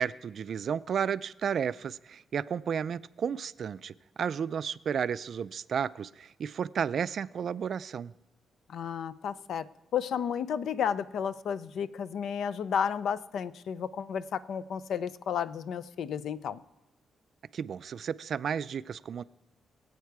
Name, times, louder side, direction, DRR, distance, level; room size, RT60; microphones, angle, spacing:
voice 1, 0.0-8.1 17.5-19.2, right 7 dB, 55° right, 16 dB, 0.3 m, -32 dB
voice 2, 8.7-9.7 9.9-16.6, left 7 dB, 75° left, 15 dB, 0.5 m, -32 dB
22.5 x 8.1 x 4.7 m, 1.1 s
cardioid pair, 130°, 0 cm